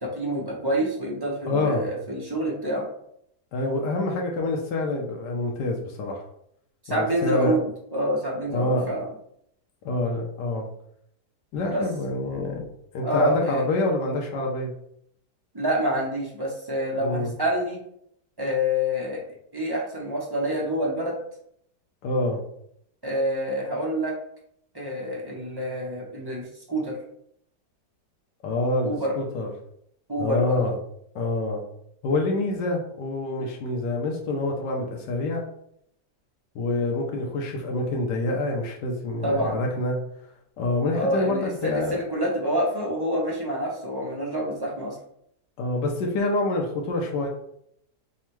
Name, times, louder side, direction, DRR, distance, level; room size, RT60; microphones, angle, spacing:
voice 1, 0.0-2.9 6.8-9.1 11.7-11.8 13.0-13.6 15.5-17.8 18.4-19.2 19.5-21.2 23.0-24.1 24.7-27.0 28.8-29.1 30.1-30.6 33.4-33.5 37.1-37.2 39.2-39.6 40.9-45.0, equal, 25° right, -3 dB, 0.5 m, -27 dB
voice 2, 1.5-1.9 3.5-6.2 6.9-7.6 8.5-8.9 9.8-10.7 11.5-12.7 12.9-14.7 17.0-17.3 22.0-22.4 28.4-29.5 30.2-30.8 31.1-31.6 32.0-35.4 36.5-40.0 40.6-42.0 45.6-47.3, left 2 dB, 85° left, 0 dB, 1.3 m, -26 dB
3.6 x 2.2 x 4.4 m, 0.70 s
omnidirectional pair, 1.8 m